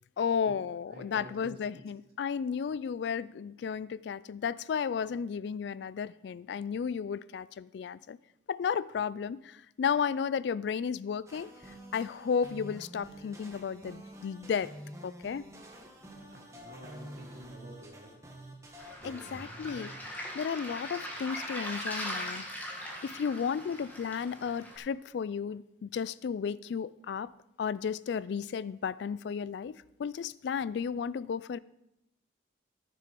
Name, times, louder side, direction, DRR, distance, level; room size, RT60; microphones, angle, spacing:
voice 1, 0.2-8.2 8.5-11.5 11.9-14.7 15.0-15.5 19.0-19.9 20.3-22.5 23.0-27.3 27.6-31.6, left 6 dB, 65° left, 0.3 m, -33 dB
voice 2, 0.9-1.8 16.1-18.1 18.9-19.4, right 1 dB, 55° right, 2.7 m, -49 dB
sound 1, 11.3-20.0, equal, 15° right, 1.5 m, -48 dB
Waves surf, 18.8-24.8, equal, 10° left, 1.7 m, -40 dB
14.0 x 6.8 x 5.2 m
head